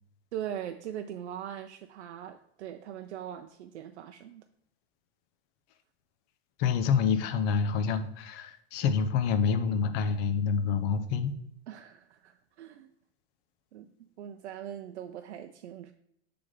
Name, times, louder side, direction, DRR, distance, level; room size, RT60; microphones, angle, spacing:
voice 1, 0.3-4.5 11.7-12.9 13.7-15.9, right 10 dB, 85° right, 7 dB, 0.5 m, -41 dB
voice 2, 6.6-11.3, left 6 dB, 30° left, 8 dB, 0.5 m, -27 dB
7.7 x 3.4 x 3.7 m, 0.72 s
supercardioid pair, 140°, 33 cm